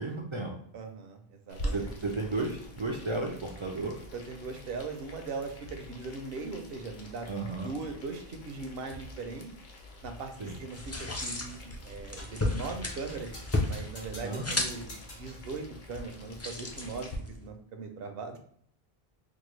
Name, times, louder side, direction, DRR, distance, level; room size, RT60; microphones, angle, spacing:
voice 1, 0.0-0.5 1.7-3.9 7.3-7.7 10.4-10.6 14.2-14.6, right 3 dB, 50° right, 0 dB, 0.3 m, -33 dB
voice 2, 0.7-2.0 4.1-7.3 7.6-9.5 10.0-13.3 13.7-17.1 17.4-18.4, right 4 dB, 70° right, 5 dB, 0.8 m, -40 dB
Boiling, 1.5-17.2, left 1 dB, 55° left, 0.7 m, -45 dB
sound 1, 10.7-17.5, left 2 dB, 25° left, 0.3 m, -35 dB
sound 2, 12.2-12.4 12.9-15.5, left 1 dB, 90° left, 1.7 m, -49 dB
4.6 x 2.2 x 3.1 m, 0.63 s
omnidirectional pair, 1.1 m